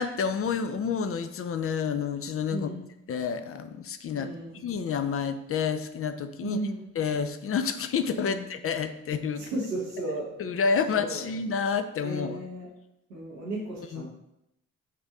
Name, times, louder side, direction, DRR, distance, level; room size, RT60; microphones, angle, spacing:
voice 1, 0.0-2.7 3.1-4.3 4.6-6.6 7.0-9.5 10.4-12.4 13.9-14.1, left 6 dB, 35° left, 10 dB, 0.4 m, -29 dB
voice 2, 2.5-2.8 4.1-4.6 6.4-6.8 8.2-8.4 9.4-10.3 10.9-11.3 12.0-12.7 13.1-14.1, right 2 dB, 90° right, -8 dB, 1.1 m, -34 dB
4.1 x 2.6 x 4.8 m, 0.85 s
hypercardioid pair, 40°, 40 cm